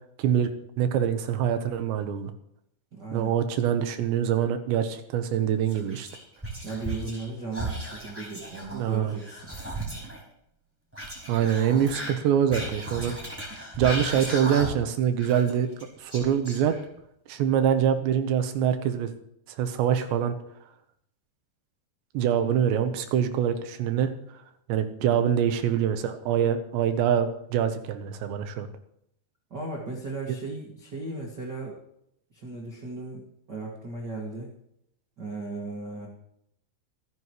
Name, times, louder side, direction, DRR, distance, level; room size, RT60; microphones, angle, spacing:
voice 1, 0.2-0.5 0.8-2.3 3.1-6.1 8.7-9.1 11.3-13.1 13.8-15.7 16.0-16.8 17.3-19.1 19.6-20.4 22.1-24.1 24.7-28.7, right 9 dB, 80° right, 8 dB, 3.3 m, -24 dB
voice 2, 2.9-3.3 6.6-9.4 25.0-25.2 29.5-31.8 32.3-34.5 35.2-36.1, right 3 dB, 30° right, -2 dB, 2.1 m, -36 dB
Whispering, 5.7-7.3 7.5-10.2 10.9-14.9 15.2-17.0, right 1 dB, 5° right, 5.1 m, -36 dB
26.0 x 10.5 x 3.2 m, 0.74 s
omnidirectional pair, 5.1 m